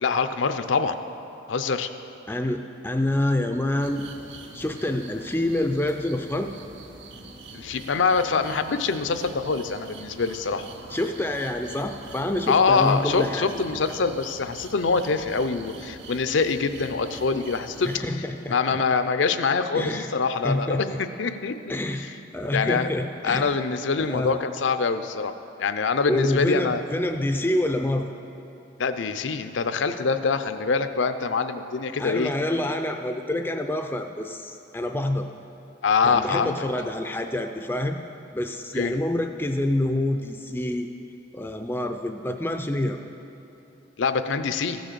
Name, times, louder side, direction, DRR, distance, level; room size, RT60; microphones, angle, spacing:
voice 1, 0.0-1.0 1.5-1.9 7.5-10.7 12.5-18.0 18.5-21.8 22.5-22.9 23.2-25.3 25.6-26.8 28.8-32.3 35.8-36.5 38.7-38.9 44.0-44.8, left 4 dB, 80° left, 10 dB, 0.6 m, -24 dB
voice 2, 2.3-4.0 4.5-6.5 10.9-13.5 17.9-18.8 19.7-20.1 20.4-21.0 21.7-22.1 22.3-23.5 24.0-24.4 26.1-28.1 32.0-35.3 36.0-38.0 38.3-40.9 41.3-43.0, left 1 dB, 10° left, 6 dB, 0.3 m, -27 dB
sound 1, 3.8-18.0, right 3 dB, 75° right, 0.9 m, -44 dB
14.5 x 6.3 x 6.8 m, 2.9 s
head